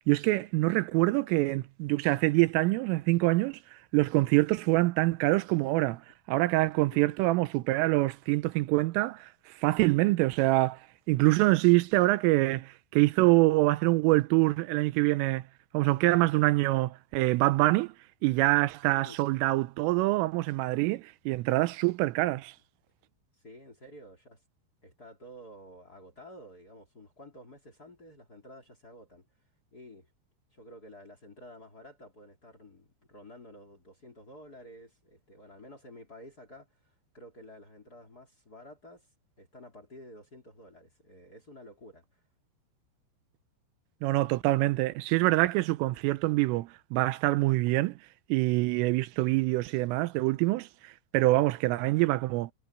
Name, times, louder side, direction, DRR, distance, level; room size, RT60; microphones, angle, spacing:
voice 1, 0.1-3.6 3.9-6.0 6.3-10.8 11.1-15.4 15.7-17.9 18.2-22.5 44.0-47.9 48.3-52.5, right 20 dB, 85° right, 3.3 m, -25 dB
voice 2, 6.8-7.2 11.2-11.6 18.9-19.2 23.3-24.4 24.8-29.3 29.7-30.1 30.5-39.1 39.4-42.2, left 1 dB, 25° left, 2.8 m, -51 dB
omnidirectional pair, 5.7 m